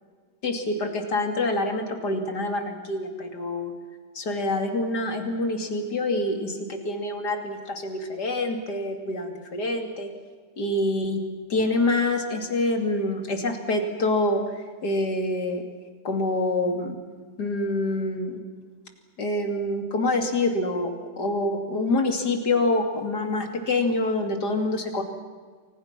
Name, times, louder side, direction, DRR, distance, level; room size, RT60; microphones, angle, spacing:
voice 1, 0.4-3.7 4.1-10.1 10.6-11.2 11.5-14.4 14.8-15.6 16.0-17.0 17.4-18.4 19.2-20.9 21.2-25.0, left 2 dB, 55° left, 4 dB, 3.3 m, -26 dB
29.5 x 24.0 x 6.1 m, 1.5 s
omnidirectional pair, 2.1 m